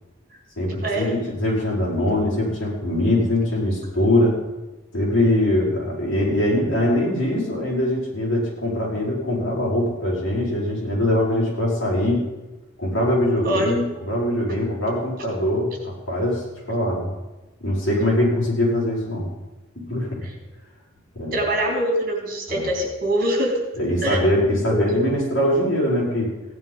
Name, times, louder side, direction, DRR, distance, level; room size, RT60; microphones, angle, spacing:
voice 1, 0.6-4.4 4.9-12.3 12.8-17.1 17.6-19.3 19.8-20.3 21.1-21.4 22.5-22.7 23.8-26.3, left 1 dB, 65° left, -5 dB, 5.3 m, -22 dB
voice 2, 21.3-23.6 24.0-24.2 24.7-25.0, right 1 dB, 45° right, 0 dB, 3.4 m, -23 dB
16.5 x 9.6 x 5.5 m, 1.1 s
head